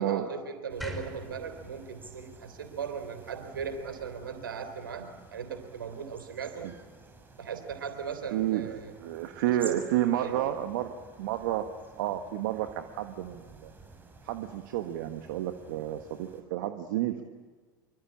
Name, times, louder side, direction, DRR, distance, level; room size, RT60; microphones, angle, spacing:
voice 1, 0.0-6.7 7.4-8.9 9.5-9.8 10.2-10.4, right 6 dB, 80° right, 9 dB, 3.5 m, -38 dB
sound 1, 0.7-16.4, right 4 dB, 15° right, 6.6 m, -52 dB
sound 2, 0.8-4.0, left 1 dB, ahead, 5.5 m, -45 dB
voice 2, 8.3-8.7 9.0-10.9 11.2-11.7 12.0-13.7 14.2-17.2, right 13 dB, 65° right, 7 dB, 1.5 m, -30 dB
26.5 x 24.0 x 8.9 m, 1.4 s
hypercardioid pair, 80°, 11 cm